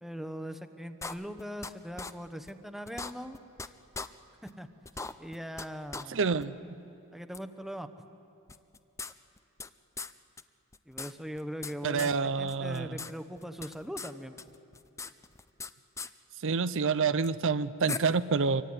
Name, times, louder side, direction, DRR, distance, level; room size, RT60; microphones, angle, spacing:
voice 1, 0.0-3.4 4.4-4.7 5.2-6.3 7.1-7.9 10.9-14.4, equal, ahead, 8 dB, 1.0 m, -40 dB
sound 1, 1.0-1.7 2.0-2.1 2.5-2.6 2.9-3.7 3.9-4.1 4.5-4.6 4.8-5.7 5.9-6.0 6.4-6.5 7.3-7.4 8.5-9.7 10.0-10.1 10.4-10.5 10.7-11.7 12.0-12.1 12.5-13.1 13.4-14.1 14.4-15.7 16.0-16.1 17.2-17.3 17.9-18.0, left 4 dB, 15° left, 0.5 m, -39 dB
voice 2, 6.1-6.5 11.8-12.9 16.4-18.6, right 5 dB, 65° right, 13 dB, 0.6 m, -27 dB
25.0 x 23.5 x 9.7 m, 2.8 s
head